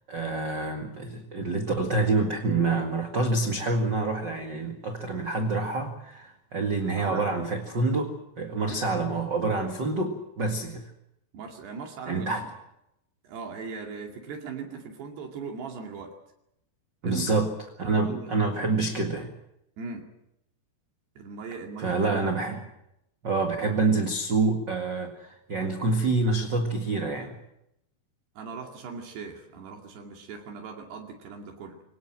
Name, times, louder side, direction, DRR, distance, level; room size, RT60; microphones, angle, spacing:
voice 1, 0.1-10.9 12.1-12.5 17.0-17.5 17.8-19.3 21.8-22.7 23.2-27.4, right 3 dB, 40° right, 4 dB, 1.7 m, -27 dB
voice 2, 7.0-7.3 11.3-12.4 13.2-16.2 17.0-17.2 17.8-18.8 19.8-20.1 21.2-22.2 22.5-22.6 28.4-31.8, right 5 dB, 75° right, 2 dB, 4.5 m, -39 dB
24.5 x 19.0 x 7.6 m, 0.81 s
omnidirectional pair, 4.8 m